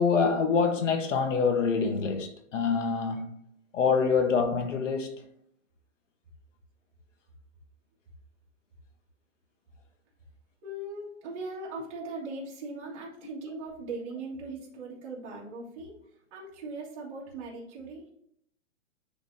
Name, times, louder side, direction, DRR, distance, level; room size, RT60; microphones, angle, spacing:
voice 1, 0.0-3.3 3.7-5.2, left 5 dB, 70° left, 1.2 m, -26 dB
voice 2, 10.6-15.9 16.3-18.1, right 2 dB, 25° right, 1.9 m, -39 dB
9.9 x 3.5 x 2.7 m
hypercardioid pair, 175°, 38 cm